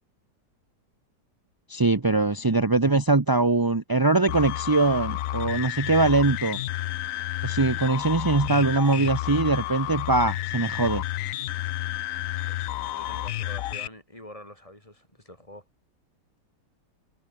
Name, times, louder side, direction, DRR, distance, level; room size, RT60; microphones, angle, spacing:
voice 1, 1.7-6.6 7.4-11.0, right 3 dB, 20° right, 0.6 m, -22 dB
sound 1, 4.3-13.9, left 14 dB, 75° left, 0.7 m, -31 dB
voice 2, 12.5-15.6, left 1 dB, 15° left, 6.6 m, -46 dB
omnidirectional pair, 1.9 m